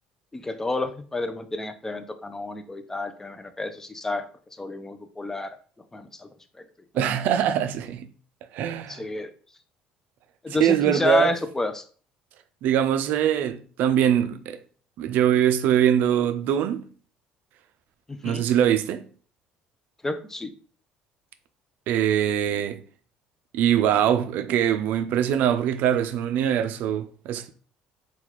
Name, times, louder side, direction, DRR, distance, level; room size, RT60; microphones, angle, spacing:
voice 1, 0.3-4.2 4.6-5.6 5.9-6.3 6.6-6.7 8.9-9.3 10.4-11.8 18.1-18.4 20.0-20.5, left 2 dB, 15° left, 0.4 m, -29 dB
voice 2, 6.9-8.1 8.5-9.0 10.6-11.3 12.6-14.6 15.0-16.9 18.2-19.0 21.9-22.8 23.5-27.5, right 10 dB, 70° right, 0.4 m, -23 dB
3.7 x 2.3 x 3.0 m
supercardioid pair, 90°, 3 cm